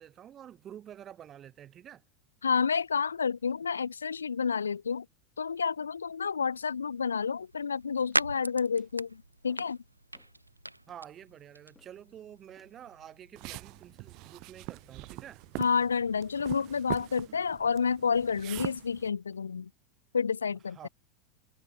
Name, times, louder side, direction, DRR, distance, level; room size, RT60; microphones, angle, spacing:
voice 1, 0.0-2.0 10.9-15.4 20.7-20.9, right 10 dB, 30° right, 1.1 m, -49 dB
voice 2, 2.4-5.1 5.4-9.8 15.6-19.7 20.1-20.9, left 6 dB, 80° left, 0.3 m, -30 dB
sound 1, 6.9-15.6, right 1 dB, 90° right, 0.4 m, -40 dB
sound 2, 8.8-9.0 9.5-9.8 10.1-10.4 10.9-11.1 11.7-12.1 12.6-12.8 13.4-13.8 14.2-14.6 15.0-15.4 15.8-16.1 16.6-16.9 17.4-17.6 18.2-18.5 19.1-19.4, left 3 dB, 10° left, 6.4 m, -66 dB
sound 3, 13.3-19.1, right 24 dB, 50° right, 1.9 m, -42 dB
figure-of-eight pair, 80°, 0 cm